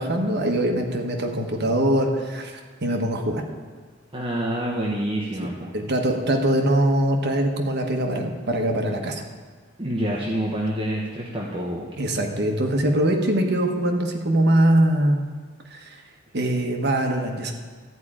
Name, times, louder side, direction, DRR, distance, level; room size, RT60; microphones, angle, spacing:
voice 1, 0.0-3.4 5.7-9.2 12.0-15.2 15.7-16.0 16.3-17.5, right 1 dB, 55° right, 3 dB, 1.2 m, -22 dB
voice 2, 4.1-5.7 9.8-12.0, right 1 dB, 25° right, -4 dB, 1.1 m, -27 dB
13.5 x 4.9 x 8.8 m, 1.5 s
head